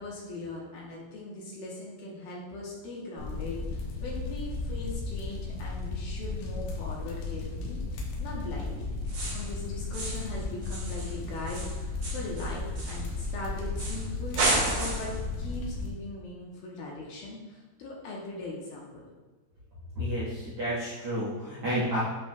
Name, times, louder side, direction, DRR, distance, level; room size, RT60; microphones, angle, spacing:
voice 1, 0.0-7.8 8.2-8.9 9.3-19.0, left 2 dB, 75° left, -3 dB, 2.4 m, -40 dB
sound 1, 3.2-15.9, left 3 dB, 90° left, 3.3 m, -35 dB
sound 2, 9.1-9.5 9.9-10.3 10.6-13.3 13.8-14.0 14.3-15.2, right 2 dB, 50° right, 2.9 m, -32 dB
voice 2, 19.9-22.0, equal, 85° right, -10 dB, 1.2 m, -31 dB
8.5 x 6.1 x 2.2 m, 1.2 s
omnidirectional pair, 4.9 m